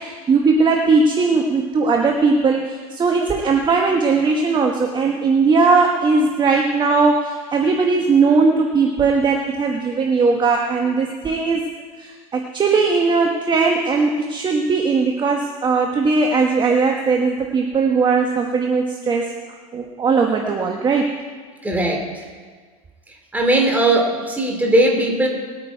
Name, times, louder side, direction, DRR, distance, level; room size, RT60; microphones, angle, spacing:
voice 1, 0.0-11.6 12.0-19.3 19.7-21.1, right 4 dB, 25° right, 2 dB, 1.2 m, -18 dB
voice 2, 21.6-22.0 23.3-25.3, right 1 dB, 10° right, 1 dB, 2.7 m, -18 dB
20.0 x 8.9 x 4.6 m, 1.5 s
supercardioid pair, 105°, 18 cm